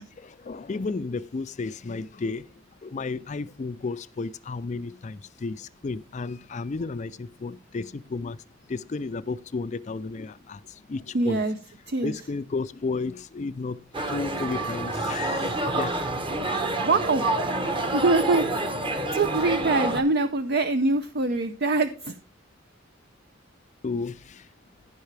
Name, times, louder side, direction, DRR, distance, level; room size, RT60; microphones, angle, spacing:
voice 1, 0.2-2.5 2.8-8.4 8.7-11.5 12.0-16.0 23.8-24.5, left 3 dB, 35° left, 0.4 m, -33 dB
voice 2, 11.1-11.6 11.9-12.1 16.8-17.3 17.9-18.5 19.1-22.1, right 3 dB, 55° right, 0.6 m, -24 dB
sound 1, 13.9-20.0, right 2 dB, 25° right, 1.1 m, -28 dB
15.0 x 5.6 x 3.3 m
head